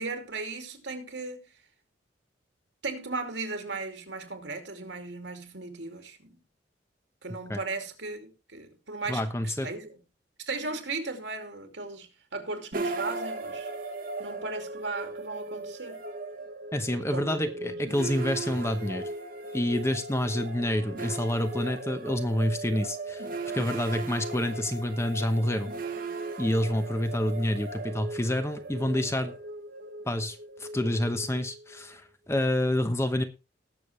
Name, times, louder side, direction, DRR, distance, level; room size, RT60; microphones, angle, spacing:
voice 1, 0.0-1.5 2.8-6.4 7.2-9.9 10.5-13.7 14.2-16.0 16.9-17.8 24.0-24.1, right 3 dB, 75° right, 2.6 m, -36 dB
voice 2, 9.1-9.7 16.7-19.1 19.5-23.3 23.5-25.7 26.4-29.4 30.0-33.2, left 1 dB, 15° left, 1.0 m, -28 dB
sound 1, 12.7-31.8, right 2 dB, 50° right, 1.4 m, -37 dB
19.0 x 7.1 x 3.2 m
head